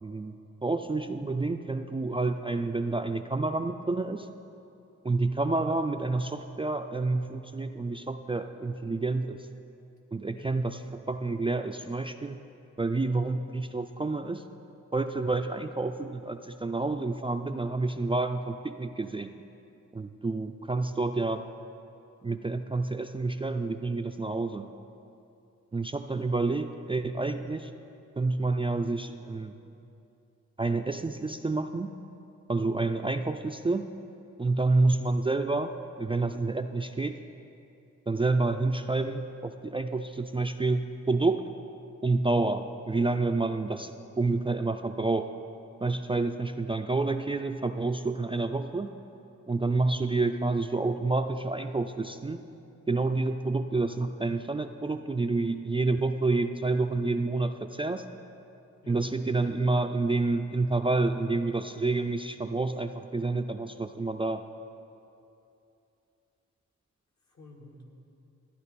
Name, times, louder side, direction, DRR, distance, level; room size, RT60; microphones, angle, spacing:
voice 1, 0.0-4.3 5.0-9.5 10.1-12.4 12.8-14.4 14.9-19.3 19.9-21.4 22.2-24.7 25.7-27.7 28.2-29.6 30.6-31.9 32.5-33.9 34.4-37.2 38.1-41.5 42.0-45.3 45.8-48.9 49.5-52.4 52.9-58.1 58.9-64.4, right 3 dB, 20° right, 6 dB, 0.3 m, -29 dB
voice 2, 26.1-26.4 58.8-59.1 67.2-67.8, left 3 dB, 65° left, 1 dB, 1.7 m, -51 dB
13.0 x 9.7 x 4.2 m, 2.8 s
cardioid pair, 70°, 30 cm